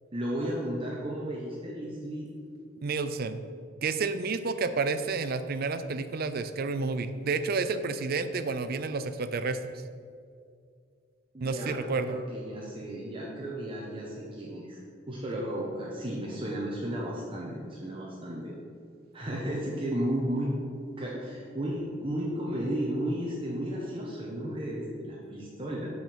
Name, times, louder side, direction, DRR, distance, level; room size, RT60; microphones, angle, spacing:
voice 1, 0.1-2.3 11.3-14.8 15.1-18.5 19.1-20.6 21.0-25.9, right 1 dB, 30° right, -4 dB, 1.0 m, -33 dB
voice 2, 2.8-3.4 3.8-9.7 11.4-12.2, right 4 dB, 55° right, 11 dB, 0.5 m, -30 dB
6.1 x 5.1 x 6.7 m, 2.3 s
head